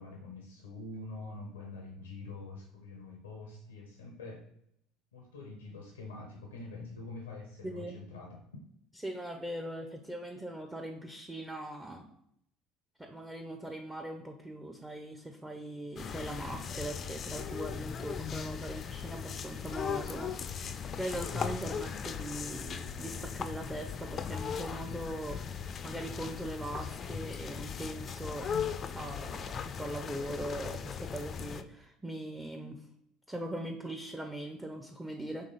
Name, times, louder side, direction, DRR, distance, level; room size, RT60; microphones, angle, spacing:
voice 1, 0.0-4.4 5.1-8.4, left 3 dB, 90° left, 1 dB, 0.6 m, -45 dB
voice 2, 7.6-8.0 9.0-12.1 13.0-25.4 25.8-28.6 28.9-32.9 33.3-35.5, right 1 dB, 10° right, 3 dB, 0.5 m, -40 dB
sound 1, 16.0-31.6, left 7 dB, 40° left, 0.3 m, -38 dB
4.2 x 3.0 x 3.8 m, 0.72 s
hypercardioid pair, 70°, 0 cm